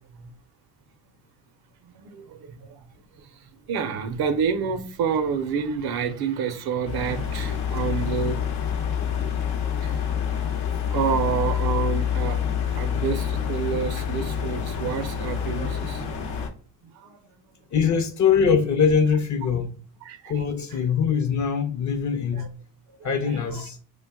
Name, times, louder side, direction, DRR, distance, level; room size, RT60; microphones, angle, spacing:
voice 1, 1.9-2.9 3.2-8.5 9.8-10.4 10.9-16.2 16.8-17.5 20.0-20.4 22.3-22.5 23.0-23.7, right 6 dB, 50° right, 0.6 m, -29 dB
sound 1, 6.8-16.5, left 8 dB, 75° left, 0.9 m, -27 dB
voice 2, 17.7-19.8 20.3-22.5 23.0-23.8, left 6 dB, 40° left, 0.6 m, -22 dB
2.4 x 2.2 x 3.5 m
hypercardioid pair, 60°, 48 cm